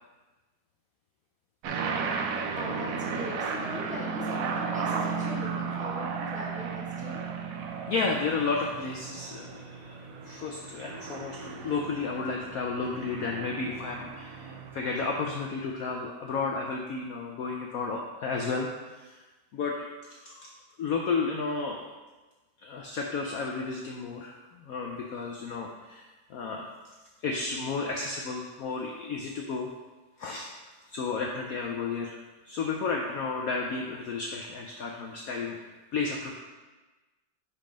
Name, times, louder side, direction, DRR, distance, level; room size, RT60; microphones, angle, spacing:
sound 1, 1.6-15.3, right 5 dB, 80° right, 0.7 m, -35 dB
voice 1, 2.6-7.2, left 1 dB, 5° right, -5 dB, 0.6 m, -40 dB
voice 2, 7.9-10.0 10.3-18.7 19.5-19.7 20.2-20.5 20.8-21.8 22.6-24.3 24.7-26.0 26.3-26.7 27.2-29.7 30.2-30.5 30.9-32.2 32.5-35.6 35.9-36.4, left 4 dB, 80° left, 1 dB, 0.7 m, -32 dB
5.2 x 4.4 x 5.0 m, 1.2 s
omnidirectional pair, 2.1 m